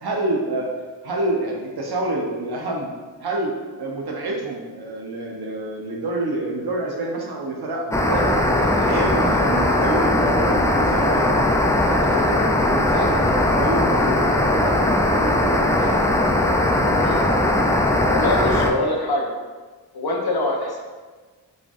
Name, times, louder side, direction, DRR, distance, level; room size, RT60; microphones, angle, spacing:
voice 1, 0.0-0.7 1.0-2.9 3.2-11.4 11.8-16.0, right 2 dB, 60° right, 0 dB, 0.8 m, -28 dB
sound 1, 7.9-18.7, left 1 dB, 10° left, 0.3 m, -19 dB
voice 2, 18.1-19.3 19.9-20.8, left 2 dB, 55° left, 0 dB, 0.9 m, -24 dB
4.0 x 3.3 x 2.4 m, 1.4 s
cardioid pair, 45°, 44 cm